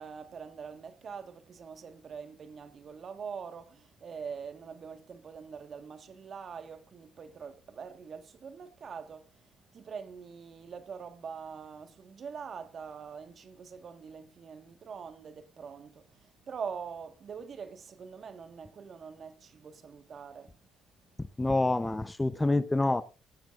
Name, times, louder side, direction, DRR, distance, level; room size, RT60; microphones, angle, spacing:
voice 1, 0.0-20.6 21.1-21.2, right 6 dB, 50° right, 1.5 m, -44 dB
voice 2, 21.4-23.0, left 2 dB, 15° left, 0.7 m, -27 dB
16.0 x 14.0 x 2.5 m
cardioid pair, 85°, 0 cm